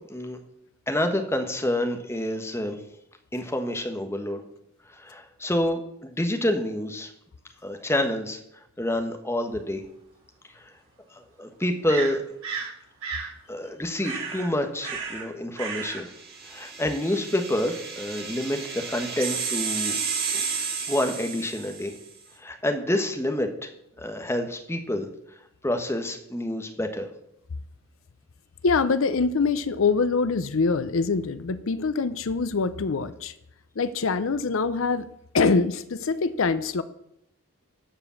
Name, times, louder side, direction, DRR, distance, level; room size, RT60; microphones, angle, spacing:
voice 1, 0.9-2.8 3.3-4.4 4.9-7.1 7.6-8.4 8.8-9.8 11.4-12.2 13.5-16.1 16.5-20.0 20.3-20.4 20.9-21.9 22.4-23.7 24.0-25.1 25.6-27.1, left 1 dB, 10° left, 6 dB, 1.1 m, -28 dB
sound 1, 9.8-9.9 11.9-12.7 13.0-13.3 14.0-14.5 14.8-15.3 15.5-16.0, right 5 dB, 85° right, 4.5 m, -33 dB
sound 2, 16.1-22.0, right 6 dB, 45° right, 2.2 m, -32 dB
voice 2, 28.6-33.3 33.8-35.0 35.3-36.8, left 4 dB, 65° left, 14 dB, 0.5 m, -24 dB
13.0 x 5.0 x 7.0 m, 0.78 s
head